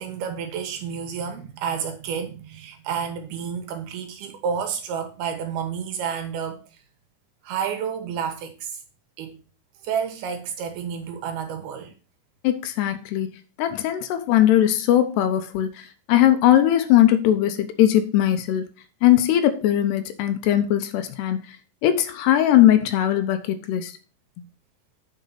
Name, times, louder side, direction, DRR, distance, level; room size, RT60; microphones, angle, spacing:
voice 1, 0.0-6.7 7.4-8.8 9.2-9.4 9.8-11.9, right 7 dB, 70° right, 2.9 m, -30 dB
voice 2, 12.4-13.3 13.6-15.7 16.1-18.7 19.0-21.4 21.8-23.9, left 12 dB, 75° left, 2.8 m, -19 dB
9.2 x 5.2 x 5.7 m
omnidirectional pair, 5.1 m